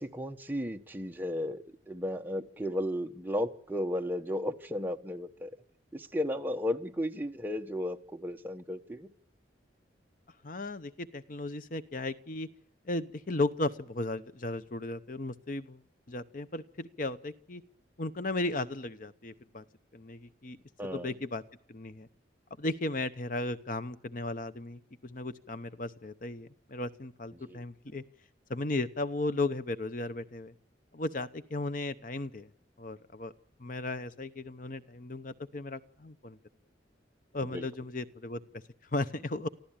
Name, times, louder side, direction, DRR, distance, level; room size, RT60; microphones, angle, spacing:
voice 1, 0.0-5.5 5.9-9.1 20.8-21.1 27.4-27.6 37.5-37.6, left 1 dB, 10° right, 4 dB, 1.2 m, -34 dB
voice 2, 10.4-12.5 12.9-15.8 16.1-17.6 18.0-19.6 19.9-20.6 20.9-21.4 21.7-22.1 22.6-28.0 28.5-30.5 30.9-32.5 32.8-33.3 33.6-36.4 37.3-38.4 38.9-39.5, left 2 dB, 45° left, 12 dB, 0.8 m, -35 dB
25.0 x 15.0 x 8.8 m, 0.66 s
head